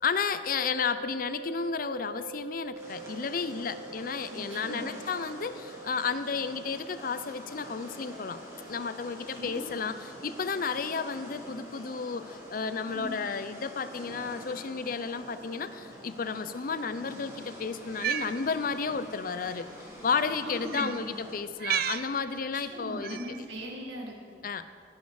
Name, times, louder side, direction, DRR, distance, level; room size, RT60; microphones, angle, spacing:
voice 1, 0.0-8.4 8.7-19.7 20.0-23.2 24.4-24.7, left 5 dB, 45° left, 12 dB, 0.5 m, -32 dB
sound 1, 0.6-13.6, right 3 dB, 30° right, 1.3 m, -47 dB
sound 2, 2.8-21.4, equal, 15° right, 2.1 m, -46 dB
voice 2, 4.3-4.9 9.3-9.8 12.9-13.2 20.4-21.1 22.5-24.4, equal, 75° right, -1 dB, 2.0 m, -40 dB
Cat, 17.8-18.3 19.4-19.5 20.7-21.0 21.6-22.1 23.0-23.4, right 9 dB, 50° right, 0.4 m, -32 dB
18.0 x 6.4 x 4.9 m, 2.2 s
head